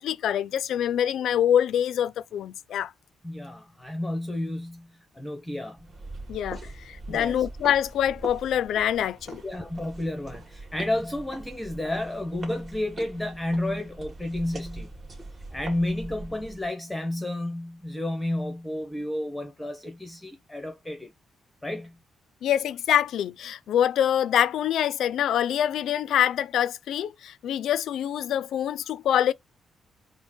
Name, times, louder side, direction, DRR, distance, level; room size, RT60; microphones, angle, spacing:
voice 1, 0.0-2.9 6.3-9.4 22.4-29.3, left 10 dB, 75° left, 0.4 m, -25 dB
voice 2, 3.2-5.9 7.1-7.5 9.4-14.9 15.5-21.1 21.6-22.0, left 1 dB, 5° left, 0.9 m, -31 dB
sound 1, 5.8-16.7, right 2 dB, 35° right, 2.0 m, -42 dB
4.4 x 2.1 x 4.3 m
cardioid pair, 110°, 0 cm